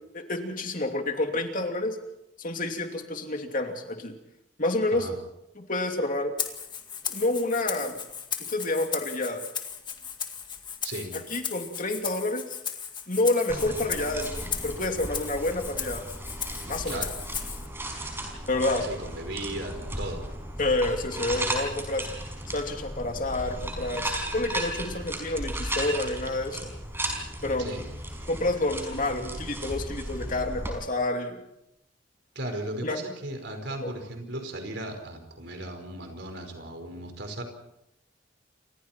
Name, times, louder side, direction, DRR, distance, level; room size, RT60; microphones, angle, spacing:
voice 1, 0.1-2.0 2.4-4.2 4.6-5.1 5.6-6.3 7.1-8.0 8.5-9.4 11.3-12.6 13.1-16.1 16.7-17.0 18.5-18.9 20.6-22.1 22.5-26.7 27.4-27.8 28.3-31.4 32.8-33.0 33.8-33.9, left 2 dB, 45° left, 4 dB, 2.8 m, -29 dB
Rattle (instrument), 6.4-17.7, left 7 dB, 25° left, 2.1 m, -36 dB
voice 2, 10.8-11.1 16.9-17.1 18.8-20.2 27.6-27.8 32.3-37.4, right 1 dB, 60° right, 5 dB, 5.1 m, -36 dB
sound 1, 13.5-30.7, right 1 dB, 10° right, 5.1 m, -35 dB
29.0 x 26.0 x 4.6 m, 0.83 s
head